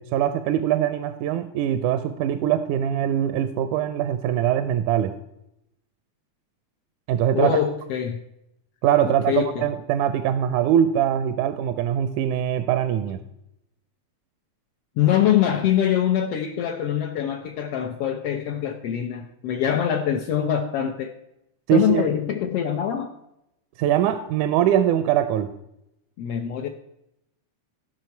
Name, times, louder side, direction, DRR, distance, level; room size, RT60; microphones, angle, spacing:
voice 1, 0.0-5.1 7.1-7.6 8.8-13.2 21.7-22.0 23.8-25.5, right 10 dB, 85° right, 10 dB, 2.0 m, -22 dB
voice 2, 7.3-8.2 9.0-9.6 15.0-21.1 21.7-23.1 26.2-26.7, left 10 dB, 70° left, 4 dB, 1.5 m, -24 dB
16.0 x 5.9 x 4.5 m, 0.84 s
omnidirectional pair, 3.4 m